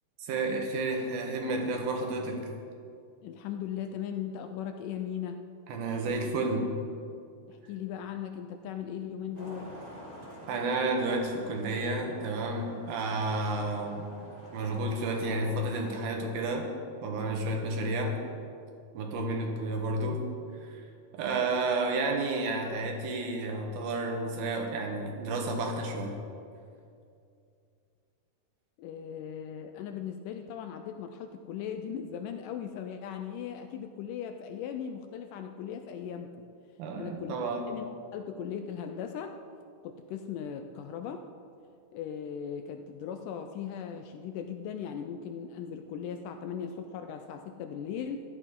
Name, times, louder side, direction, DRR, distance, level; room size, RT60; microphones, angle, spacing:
voice 1, 0.2-2.5 5.7-6.7 10.5-14.1 14.5-16.7 17.0-18.2 18.9-20.2 20.5-20.8 21.1-26.2 36.8-37.7, right 2 dB, 80° right, 2 dB, 3.1 m, -31 dB
voice 2, 3.2-5.4 7.5-9.7 28.8-36.5 37.0-37.4 37.7-37.9 38.1-39.4 39.8-41.3 41.9-48.2, left 8 dB, 85° left, 6 dB, 1.8 m, -38 dB
Traffic noise roadway noise, 9.3-16.2, equal, 20° right, 1.2 m, -48 dB
14.5 x 11.0 x 3.7 m, 2.4 s
omnidirectional pair, 4.3 m